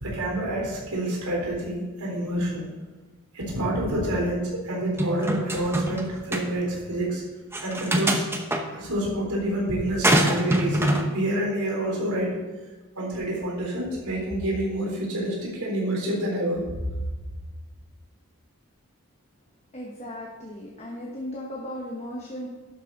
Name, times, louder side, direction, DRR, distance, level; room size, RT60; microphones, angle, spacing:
voice 1, 0.0-2.7 3.3-7.2 7.6-8.2 8.7-12.4 13.0-16.6, right 1 dB, 85° right, -3 dB, 3.8 m, -28 dB
sound 1, 5.0-6.0 6.3-6.4 7.5-8.6 10.0-11.0, right 1 dB, 10° right, 0.8 m, -23 dB
voice 2, 19.7-22.5, left 1 dB, 30° left, -2 dB, 1.2 m, -36 dB
11.5 x 7.5 x 4.0 m, 1.2 s
head